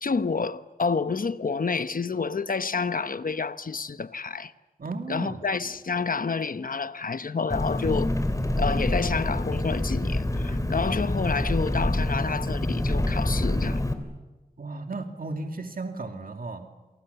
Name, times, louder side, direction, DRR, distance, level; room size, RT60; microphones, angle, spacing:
voice 1, 0.0-4.5 5.1-8.1 8.6-13.8, left 4 dB, 65° left, 1.0 m, -29 dB
voice 2, 4.8-5.4 14.6-16.7, right 3 dB, 65° right, 2.5 m, -34 dB
Engine, 7.5-13.9, left 1 dB, 20° left, 3.3 m, -26 dB
29.0 x 27.0 x 6.9 m
wide cardioid pair, 65°, 16 cm